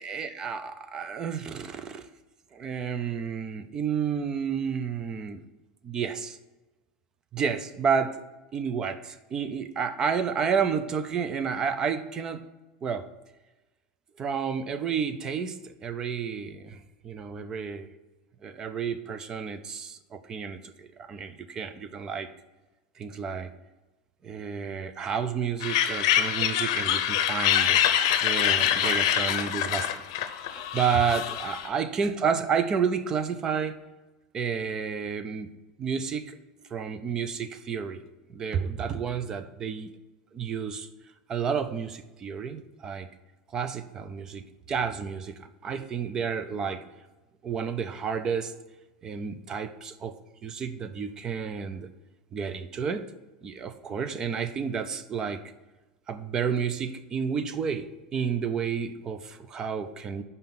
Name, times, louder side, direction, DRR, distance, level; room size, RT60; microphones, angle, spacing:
voice 1, 0.0-2.1 2.5-5.4 5.8-6.4 7.3-8.2 8.5-12.4 12.8-13.1 14.2-16.8 17.0-17.9 18.4-22.3 23.0-23.5 24.2-27.8 28.2-29.9 30.6-33.8 34.3-35.5 35.8-36.4 36.7-38.0 38.3-39.9 40.3-40.9 41.3-43.1 43.5-46.8 47.4-48.5 49.0-50.2 50.4-51.9 52.3-53.1 53.4-55.4 56.1-60.2, right 6 dB, 25° right, 11 dB, 0.5 m, -30 dB
sound 1, 25.6-31.7, left 10 dB, 70° left, 0.6 m, -25 dB
5.5 x 5.4 x 5.9 m, 1.1 s
supercardioid pair, 160°, 3 cm